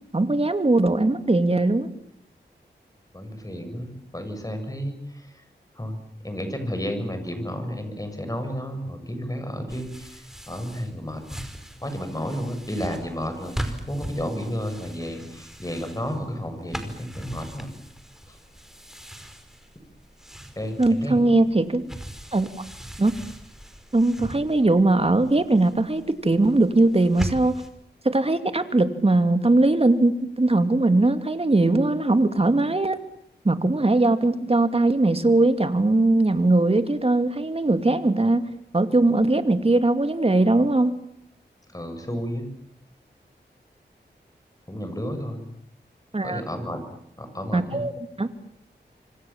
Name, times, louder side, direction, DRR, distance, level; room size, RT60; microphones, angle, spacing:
voice 1, 0.1-1.9 20.8-21.8 22.3-22.5 23.0-23.1 23.9-27.6 28.0-33.0 33.4-38.5 38.7-40.9 46.1-46.4 47.5-47.9 48.2-48.3, right 2 dB, 35° right, 9 dB, 2.6 m, -20 dB
voice 2, 3.1-5.0 5.8-6.0 6.2-11.4 11.8-17.7 20.6-21.2 41.7-42.5 44.7-45.5 46.2-46.8 47.2-47.8, equal, 20° left, 7 dB, 7.5 m, -32 dB
sound 1, 9.7-27.7, right 1 dB, ahead, 5.1 m, -39 dB
27.0 x 25.0 x 7.4 m, 0.72 s
wide cardioid pair, 65°, 18 cm